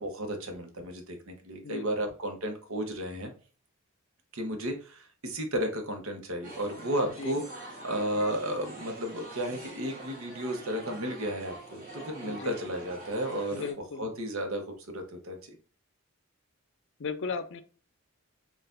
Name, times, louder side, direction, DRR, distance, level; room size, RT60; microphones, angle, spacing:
voice 1, 0.0-3.3 4.3-7.4 7.8-13.7 14.0-15.6, equal, 70° right, 4 dB, 1.0 m, -33 dB
sound 1, 6.4-13.7, right 2 dB, 40° right, 1.4 m, -45 dB
voice 2, 7.0-7.4 12.2-12.6 13.5-14.1 17.0-17.6, left 5 dB, 60° left, 11 dB, 0.5 m, -36 dB
6.5 x 2.4 x 2.5 m, 0.39 s
head